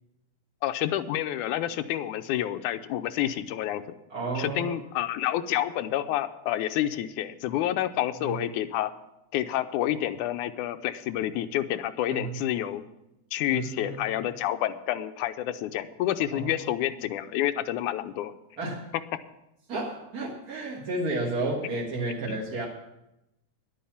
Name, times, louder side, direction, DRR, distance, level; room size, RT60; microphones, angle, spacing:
voice 1, 0.6-3.8 4.4-8.9 9.3-12.8 13.3-18.3 22.3-22.4, left 12 dB, 90° left, 10 dB, 2.1 m, -29 dB
voice 2, 4.1-4.8 8.2-8.4 12.1-12.4 13.5-14.2 16.3-16.5 18.6-18.9 19.7-22.7, right 2 dB, 40° right, -3 dB, 1.6 m, -32 dB
11.0 x 8.6 x 7.2 m, 0.89 s
omnidirectional pair, 3.4 m